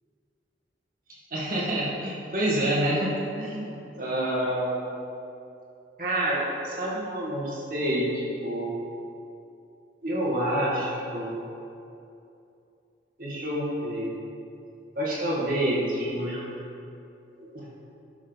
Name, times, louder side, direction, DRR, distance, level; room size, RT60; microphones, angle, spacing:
voice 1, 1.3-4.9 6.0-8.1 8.4-8.7 10.0-11.3 13.2-14.1 15.0-16.4 17.4-17.7, right 1 dB, 50° right, -5 dB, 2.1 m, -28 dB
12.0 x 6.3 x 4.1 m, 2.7 s
head